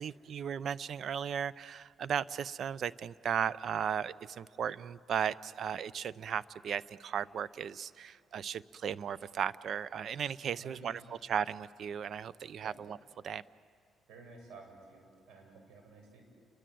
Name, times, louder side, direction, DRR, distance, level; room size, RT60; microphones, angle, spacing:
voice 1, 0.0-13.0 13.2-13.4, right 8 dB, 60° right, 19 dB, 0.6 m, -36 dB
voice 2, 10.5-11.2 12.6-12.8 14.1-16.2, right 3 dB, 85° right, 2 dB, 6.8 m, -53 dB
29.5 x 23.0 x 7.7 m, 2.5 s
cardioid pair, 90°, 0 cm